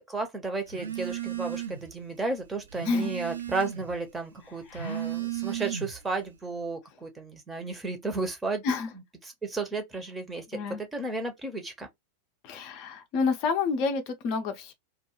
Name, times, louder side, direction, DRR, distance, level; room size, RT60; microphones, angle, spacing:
voice 1, 0.0-8.6 9.2-11.9, right 3 dB, 10° right, 0.7 m, -33 dB
Telephone, 0.7-1.9 2.3-4.0 4.6-6.1, right 11 dB, 75° right, 0.4 m, -35 dB
voice 2, 4.7-5.2 8.6-8.9 10.5-10.8 12.4-14.7, left 5 dB, 40° left, 0.5 m, -29 dB
2.3 x 2.2 x 2.8 m
figure-of-eight pair, 90°, 0 cm